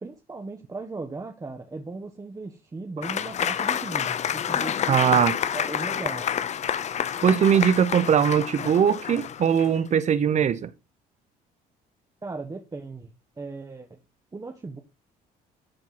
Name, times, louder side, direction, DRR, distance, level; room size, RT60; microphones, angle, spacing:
voice 1, 0.0-5.3 5.5-6.3 12.2-14.0 14.3-14.8, right 3 dB, 20° right, 1.4 m, -37 dB
Applause / Crowd, 3.0-9.8, left 8 dB, 45° left, 0.8 m, -28 dB
voice 2, 4.9-5.4 7.2-10.7, right 8 dB, 45° right, 0.9 m, -21 dB
13.0 x 4.5 x 5.9 m
cardioid pair, 110°, 17 cm